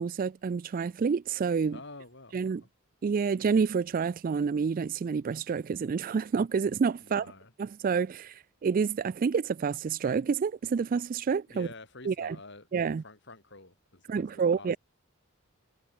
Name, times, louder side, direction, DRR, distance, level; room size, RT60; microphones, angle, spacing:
voice 1, 0.0-1.8 2.3-2.6 3.0-7.3 7.6-11.7 12.1-12.4 12.7-13.0 14.1-14.8, right 5 dB, 40° right, 0.3 m, -28 dB
voice 2, 1.7-2.7 7.0-7.5 11.5-14.3 14.6-14.8, left 3 dB, 55° left, 5.2 m, -49 dB
head